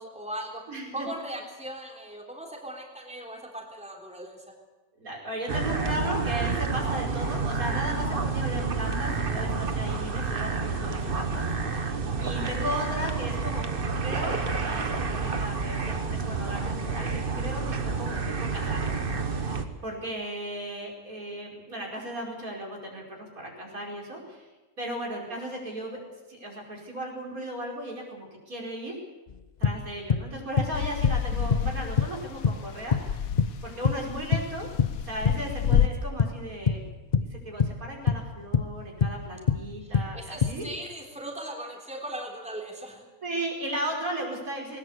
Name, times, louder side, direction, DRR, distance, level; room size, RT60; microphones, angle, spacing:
voice 1, 0.0-0.6 0.9-4.4 39.9-43.1, right 1 dB, 5° right, 0 dB, 3.5 m, -38 dB
voice 2, 0.7-1.1 5.0-13.7 14.0-24.5 24.8-26.0 26.3-29.0 29.6-33.3 33.6-34.7 35.0-36.8 37.3-40.7 43.2-44.8, right 1 dB, 75° right, -1 dB, 5.7 m, -36 dB
sound 1, 5.5-19.6, right 4 dB, 40° right, 1.5 m, -29 dB
sound 2, 29.3-29.4 29.6-30.3 30.6-31.2 31.5-31.7 32.0-32.2 32.4-33.1 33.4-34.5 34.8-35.5 35.7-36.4 36.7-36.9 37.1-37.8 38.1-38.7 39.0-39.2 39.5-39.7 39.9-40.6, left 6 dB, 40° left, 0.7 m, -25 dB
sound 3, 30.7-32.5 32.8-35.9, left 8 dB, 75° left, 1.3 m, -28 dB
20.5 x 19.5 x 8.2 m, 1.2 s
omnidirectional pair, 1.5 m